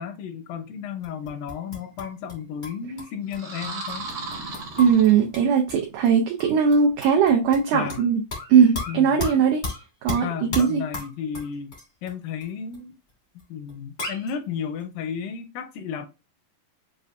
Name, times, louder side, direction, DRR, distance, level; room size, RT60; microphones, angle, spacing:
voice 1, 0.0-4.1 7.7-8.0 8.9-9.2 10.2-11.7 12.0-13.0 13.5-16.1, left 7 dB, 80° left, 2.1 m, -33 dB
sound 1, 1.0-2.3 2.6-5.8 6.0-6.1 6.4-8.1 8.3-12.1 12.4-12.5 12.7-12.8 13.4-13.5 13.7-13.8 14.0-14.3, left 3 dB, 60° left, 0.6 m, -34 dB
sound 2, 3.3-5.6, right 3 dB, 65° right, 1.2 m, -36 dB
voice 2, 4.8-8.2 8.5-9.6 10.0-10.8, right 7 dB, 85° right, 1.7 m, -19 dB
6.6 x 2.5 x 2.4 m
omnidirectional pair, 4.3 m